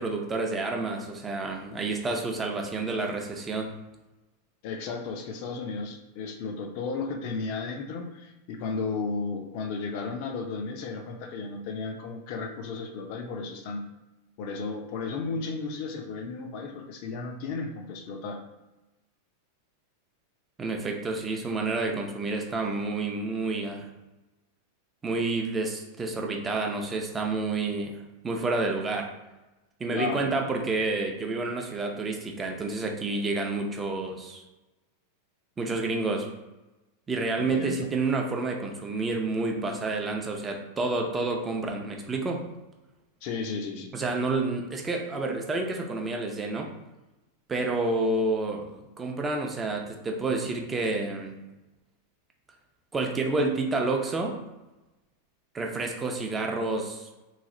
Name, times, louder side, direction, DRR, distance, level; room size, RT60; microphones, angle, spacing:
voice 1, 0.0-3.8 20.6-23.9 25.0-29.1 29.8-34.4 35.6-36.3 37.1-42.4 43.9-46.7 47.5-51.4 52.9-54.4 55.5-57.1, right 3 dB, 15° right, 2 dB, 0.6 m, -29 dB
voice 2, 4.6-13.9 14.4-18.4 29.9-30.4 37.4-37.9 43.2-44.0, left 4 dB, 55° left, 4 dB, 0.6 m, -34 dB
3.2 x 2.4 x 3.7 m, 1.0 s
supercardioid pair, 130°, 0 cm